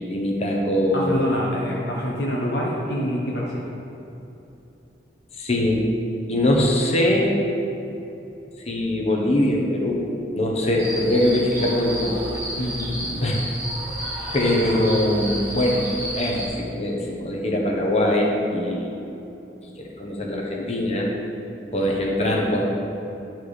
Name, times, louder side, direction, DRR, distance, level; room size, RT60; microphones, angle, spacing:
voice 1, 0.0-1.4 5.4-5.9 6.3-7.4 8.7-10.0 10.3-12.1 13.2-13.4 14.3-18.9 19.8-21.1 21.7-22.7, left 1 dB, 35° left, -1 dB, 1.0 m, -22 dB
voice 2, 0.9-3.7 12.6-13.2, equal, 65° left, -4 dB, 0.9 m, -26 dB
sound 1, 10.8-16.5, equal, 15° right, 1.5 m, -31 dB
10.0 x 4.6 x 4.9 m, 2.9 s
head